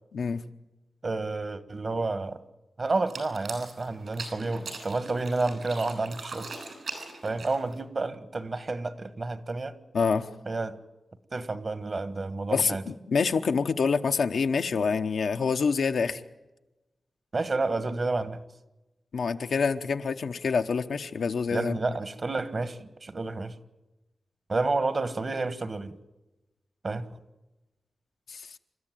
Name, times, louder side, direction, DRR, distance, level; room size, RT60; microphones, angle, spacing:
voice 1, 1.0-2.4 2.8-6.5 7.2-9.8 10.5-10.8 11.3-12.8 17.3-18.4 21.5-23.5 24.5-26.0 26.8-27.2, right 3 dB, 45° right, 1.5 m, -30 dB
sound 1, 3.0-7.8, right 3 dB, 75° right, 6.8 m, -41 dB
voice 2, 9.9-10.3 12.5-16.2 19.1-21.8 28.3-28.5, left 5 dB, 85° left, 1.0 m, -26 dB
29.0 x 13.5 x 9.1 m
wide cardioid pair, 80°, 0 cm